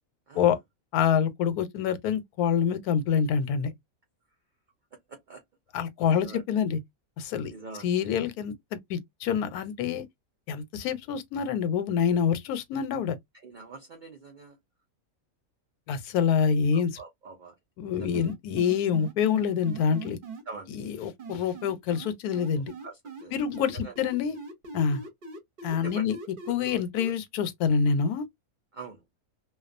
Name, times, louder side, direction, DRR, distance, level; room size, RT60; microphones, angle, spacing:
voice 1, 0.9-3.7 5.7-6.8 7.2-7.5 7.8-8.5 8.9-10.0 10.5-13.2 15.9-17.0 17.8-20.2 20.7-22.7 23.3-24.4 24.7-25.0 25.6-26.2 26.5-28.2, left 7 dB, 90° left, 1.1 m, -26 dB
voice 2, 5.1-5.4 6.2-6.4 7.5-7.9 13.4-14.5 16.7-17.5 18.0-18.2 20.5-20.8 22.8-23.3 23.8-23.9 25.8-26.0 28.7-29.0, right 4 dB, 85° right, 0.4 m, -44 dB
sound 1, 18.1-20.4 21.2-23.2 23.5-27.1, right 4 dB, 50° right, 0.7 m, -41 dB
2.3 x 2.3 x 2.5 m
omnidirectional pair, 1.5 m